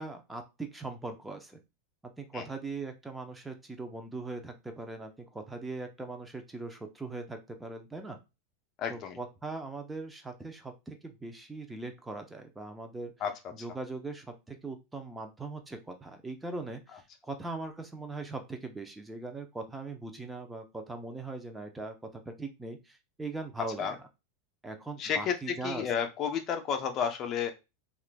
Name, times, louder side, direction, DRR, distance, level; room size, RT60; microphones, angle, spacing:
voice 1, 0.0-1.6 2.2-8.2 8.9-13.1 13.5-24.1 24.6-25.9, right 3 dB, 10° right, 5 dB, 0.6 m, -40 dB
voice 2, 8.8-9.2 13.2-13.3 23.8-23.9 25.0-25.3 25.6-27.5, left 7 dB, 40° left, 6 dB, 0.7 m, -31 dB
5.7 x 2.5 x 2.2 m, 0.25 s
hypercardioid pair, 110°, 0 cm